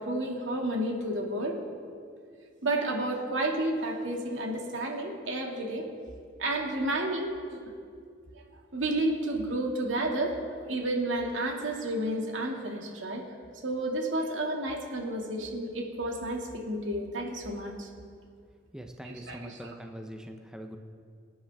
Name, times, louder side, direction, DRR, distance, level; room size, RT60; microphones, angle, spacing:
voice 1, 0.0-1.6 2.6-5.9 6.4-7.6 8.7-13.2 13.6-17.9 19.0-19.7, right 1 dB, 85° right, 0 dB, 2.2 m, -31 dB
voice 2, 18.7-20.8, equal, 5° right, 4 dB, 0.7 m, -43 dB
24.5 x 10.0 x 3.5 m, 2.2 s
head